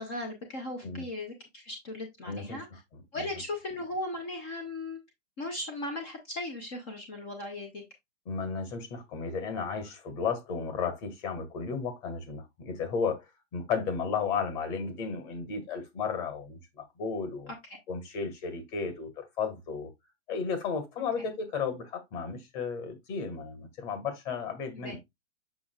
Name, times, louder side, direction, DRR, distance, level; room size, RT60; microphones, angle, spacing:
voice 1, 0.0-2.7 3.1-5.0 5.4-7.8 24.7-25.0, left 2 dB, 10° left, 0.4 m, -37 dB
voice 2, 2.2-2.6 2.9-3.3 8.3-17.5 17.9-19.9 20.3-25.0, left 5 dB, 35° left, 1.9 m, -34 dB
7.0 x 6.1 x 2.3 m
hypercardioid pair, 155°, 39 cm